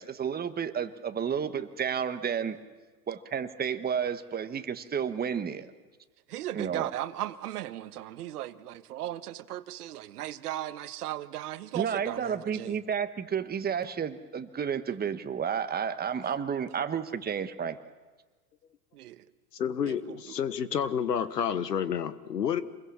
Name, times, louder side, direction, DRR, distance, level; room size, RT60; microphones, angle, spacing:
voice 1, 0.0-2.6 3.1-5.7 6.5-6.9 11.7-17.8, right 7 dB, 20° right, 9 dB, 1.4 m, -31 dB
voice 2, 6.3-12.8 18.9-19.2 19.9-20.3, right 13 dB, 70° right, 12 dB, 1.3 m, -37 dB
voice 3, 19.5-22.6, left 8 dB, 90° left, 14 dB, 1.3 m, -29 dB
28.0 x 21.5 x 7.3 m, 1.3 s
hypercardioid pair, 100°, 47 cm